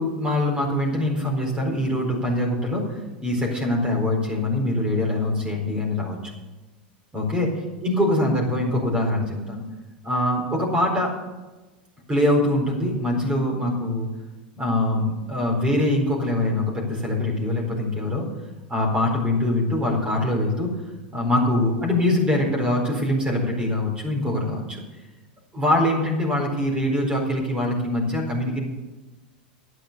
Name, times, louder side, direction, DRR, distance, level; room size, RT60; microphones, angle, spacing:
voice 1, 0.0-6.2 7.1-7.5 7.8-9.6 10.0-11.1 12.1-14.1 14.6-18.2 18.7-20.7 21.1-24.8 25.5-28.6, left 1 dB, 20° right, 0 dB, 4.3 m, -23 dB
11.0 x 8.9 x 6.9 m, 1.1 s
hypercardioid pair, 110°, 5 cm